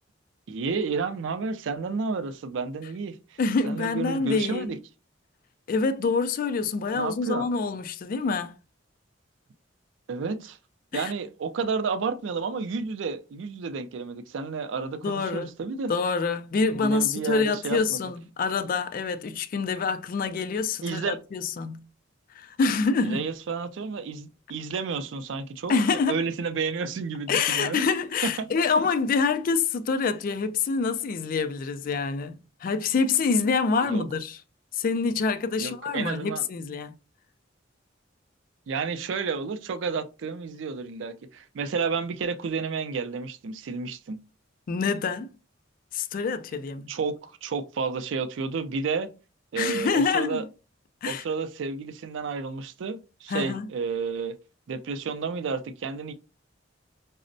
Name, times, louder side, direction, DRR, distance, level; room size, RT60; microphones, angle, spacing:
voice 1, 0.5-3.2 3.6-4.8 6.9-7.5 10.1-10.6 10.9-15.9 16.7-18.0 20.8-21.2 23.0-25.7 26.1-27.8 28.2-28.3 33.8-34.0 35.6-36.4 38.7-44.2 46.9-49.1 49.5-50.4 51.1-54.4 54.7-56.1, right 5 dB, 70° right, 0.4 m, -31 dB
voice 2, 3.4-4.7 5.7-8.6 10.9-11.1 15.0-15.5 15.9-21.8 22.4-23.2 25.7-26.2 27.3-34.4 34.7-36.9 44.7-45.3 45.9-46.9 49.6-50.5 51.0-51.2 53.3-53.7, left 4 dB, 45° left, 0.3 m, -26 dB
5.0 x 2.0 x 2.5 m
head